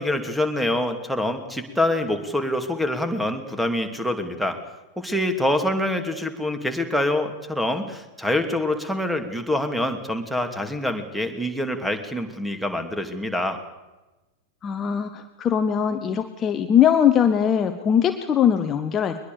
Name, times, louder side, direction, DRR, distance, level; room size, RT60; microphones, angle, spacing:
voice 1, 0.0-4.6 5.0-13.6, left 1 dB, ahead, 7 dB, 2.7 m, -25 dB
voice 2, 14.6-19.3, left 8 dB, 25° left, 8 dB, 1.3 m, -21 dB
22.5 x 21.5 x 6.9 m, 1.1 s
figure-of-eight pair, 90°, 0 cm